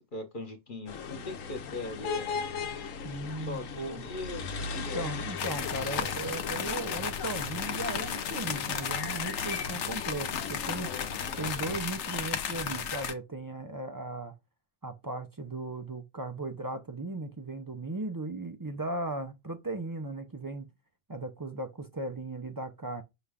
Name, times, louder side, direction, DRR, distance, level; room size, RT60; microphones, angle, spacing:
voice 1, 0.1-2.4 3.4-5.1, left 2 dB, 45° left, 0.9 m, -40 dB
sound 1, 0.9-11.8, left 5 dB, 85° left, 1.1 m, -38 dB
voice 2, 3.0-4.0 4.7-10.9 11.4-14.3 14.8-20.7 21.1-23.0, right 2 dB, 30° right, 0.3 m, -37 dB
sound 2, 5.4-13.1, left 8 dB, 70° left, 0.9 m, -34 dB
6.0 x 2.5 x 3.4 m
omnidirectional pair, 1.3 m